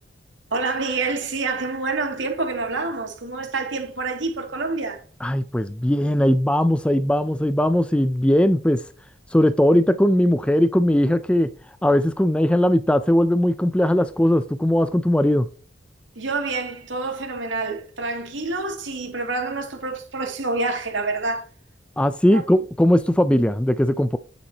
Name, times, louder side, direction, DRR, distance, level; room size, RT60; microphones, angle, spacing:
voice 1, 0.5-5.0 16.2-21.4 22.3-22.4, right 3 dB, 85° right, 2.5 m, -27 dB
voice 2, 5.2-8.8 9.3-11.5 11.8-15.5 22.0-24.2, equal, 5° left, 0.4 m, -19 dB
9.4 x 7.4 x 2.9 m
head